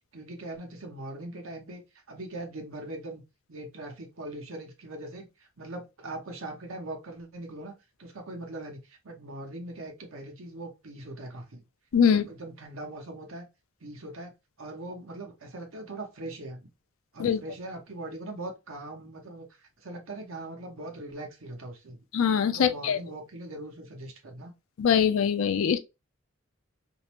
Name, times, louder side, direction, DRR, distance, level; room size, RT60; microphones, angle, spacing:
voice 1, 0.1-1.8 2.1-3.2 3.5-7.7 8.0-11.6 12.1-13.5 13.8-14.3 14.6-16.7 17.1-22.0 22.5-24.5, right 2 dB, 75° right, 0.9 m, -41 dB
voice 2, 11.9-12.2 17.2-17.4 22.1-23.0 24.8-25.8, left 7 dB, 70° left, 0.4 m, -23 dB
2.6 x 2.0 x 2.9 m
head